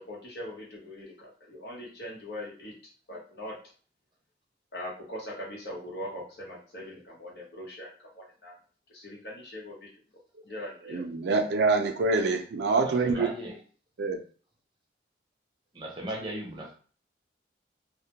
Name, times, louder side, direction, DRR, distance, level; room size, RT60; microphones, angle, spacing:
voice 1, 0.1-2.7 3.1-3.5 4.7-7.9 8.2-8.5 8.9-9.9 10.4-11.0, left 1 dB, 65° left, -3 dB, 0.8 m, -41 dB
voice 2, 10.9-13.3 14.0-14.2, right 3 dB, 75° right, 5 dB, 0.4 m, -25 dB
voice 3, 12.8-13.6 15.7-16.7, right 1 dB, 25° right, -1 dB, 0.6 m, -37 dB
2.1 x 2.1 x 2.8 m, 0.41 s
head